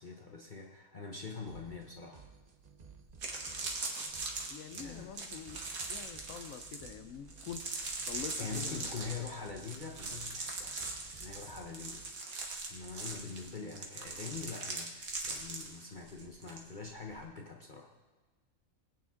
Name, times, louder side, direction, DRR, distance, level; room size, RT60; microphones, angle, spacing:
voice 1, 0.0-2.2 4.7-5.1 8.4-10.7 11.1-12.0 12.7-17.9, left 5 dB, 40° left, 1 dB, 0.9 m, -44 dB
sound 1, 1.5-12.1, right 5 dB, 35° right, 0.8 m, -56 dB
sound 2, 2.6-2.7 3.1-16.6 16.9-17.2, right 3 dB, 75° right, 2.0 m, -41 dB
voice 2, 4.5-7.7 8.1-9.1, left 8 dB, 70° left, 10 dB, 1.0 m, -46 dB
20.5 x 8.8 x 3.7 m, 1.3 s
omnidirectional pair, 1.5 m